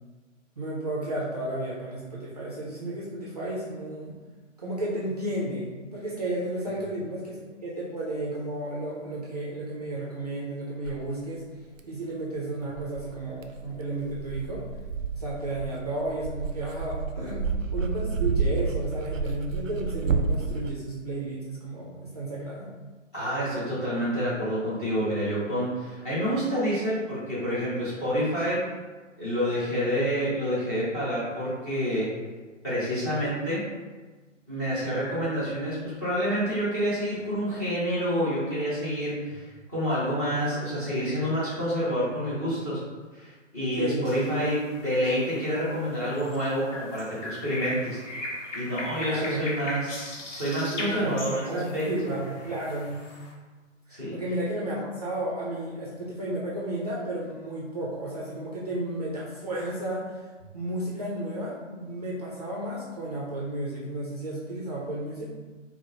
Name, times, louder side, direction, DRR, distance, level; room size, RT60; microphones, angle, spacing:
voice 1, 0.6-4.1 4.6-11.4 11.9-14.6 15.1-17.4 17.7-22.7 43.8-44.1 49.0-49.5 50.7-51.2 51.5-53.1 53.9-60.1 60.5-65.3, right 1 dB, 30° right, -6 dB, 0.5 m, -33 dB
Dog, 10.8-11.0 11.8-11.9 12.8-20.7, right 4 dB, 85° right, 0.5 m, -30 dB
voice 2, 23.1-28.6 29.2-32.1 32.6-33.6 34.5-39.4 39.7-42.8 43.1-48.0 48.5-51.8 53.9-54.1, equal, 10° left, -11 dB, 0.6 m, -28 dB
sound 1, 44.0-53.3, left 1 dB, 65° left, 0.9 m, -39 dB
4.4 x 2.0 x 2.9 m, 1.3 s
hypercardioid pair, 155°, 38 cm